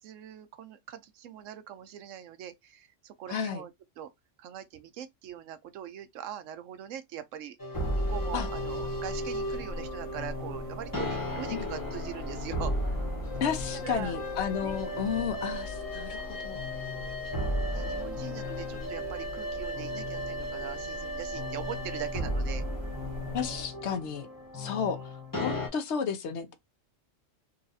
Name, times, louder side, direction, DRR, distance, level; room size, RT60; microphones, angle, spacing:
voice 1, 0.0-4.1 4.4-7.6 7.9-13.0 13.7-14.2 14.6-14.8 17.7-22.6 24.5-25.1, right 10 dB, 80° right, 0.9 m, -42 dB
voice 2, 3.3-3.6 8.3-8.5 11.5-11.7 13.4-16.6 23.3-24.3 24.5-26.5, left 7 dB, 65° left, 0.9 m, -32 dB
sound 1, 7.6-25.7, left 1 dB, 20° left, 0.9 m, -35 dB
sound 2, 7.7-23.7, left 1 dB, 50° right, 1.0 m, -42 dB
3.9 x 2.4 x 2.6 m
omnidirectional pair, 1.3 m